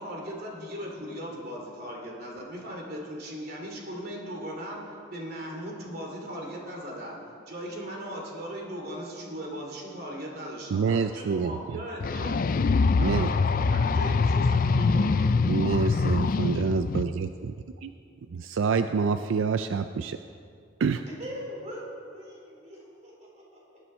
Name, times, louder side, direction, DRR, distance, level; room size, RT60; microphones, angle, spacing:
voice 1, 0.0-7.2 7.5-12.4 13.0-15.5, equal, 50° right, -1 dB, 2.6 m, -38 dB
voice 2, 10.7-11.8 13.0-13.3 15.5-17.5 17.8-17.9 18.3-20.2 20.8-21.0, right 5 dB, 80° right, 9 dB, 0.4 m, -27 dB
sound 1, 12.0-17.0, left 4 dB, 45° left, 0.4 m, -24 dB
voice 3, 21.0-23.8, equal, 35° right, -4 dB, 3.9 m, -41 dB
20.0 x 10.0 x 4.3 m, 2.4 s
head